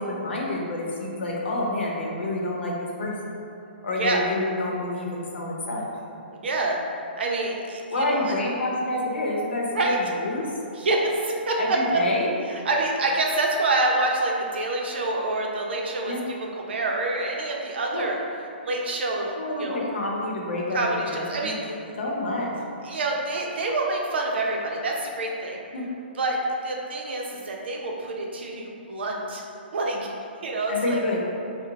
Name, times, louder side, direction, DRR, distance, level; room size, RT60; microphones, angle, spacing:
voice 1, 0.0-2.7 3.0-3.1 3.8-5.8 7.9-10.4 11.6-12.3 16.1-16.2 17.9-18.0 19.4-20.8 21.1-22.5 25.7-25.8 30.7-31.2, left 2 dB, 80° left, -2 dB, 0.8 m, -28 dB
voice 2, 6.4-6.8 7.1-8.4 9.7-10.0 10.7-12.0 12.5-18.2 18.6-19.9 20.7-21.8 22.8-25.6 26.1-26.4 26.6-29.4 29.7-30.0 30.4-31.0, right 2 dB, 70° right, 0 dB, 0.6 m, -27 dB
4.7 x 2.1 x 2.8 m, 2.7 s
hypercardioid pair, 145°, 6 cm